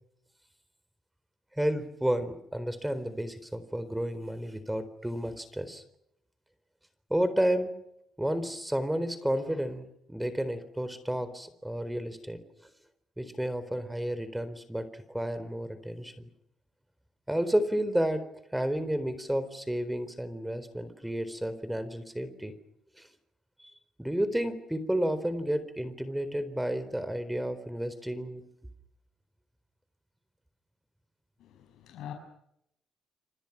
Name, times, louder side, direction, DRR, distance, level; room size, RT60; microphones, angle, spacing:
voice 1, 1.6-5.8 7.1-7.7 8.2-12.7 13.2-16.3 17.3-18.2 18.5-22.5 23.0-23.1 23.6-23.7 24.0-28.4, right 1 dB, 5° right, 13 dB, 4.0 m, -31 dB
voice 2, 31.4-32.1, left 10 dB, 85° left, 4 dB, 6.1 m, -44 dB
27.5 x 27.5 x 6.1 m, 0.78 s
cardioid pair, 90°, 0 cm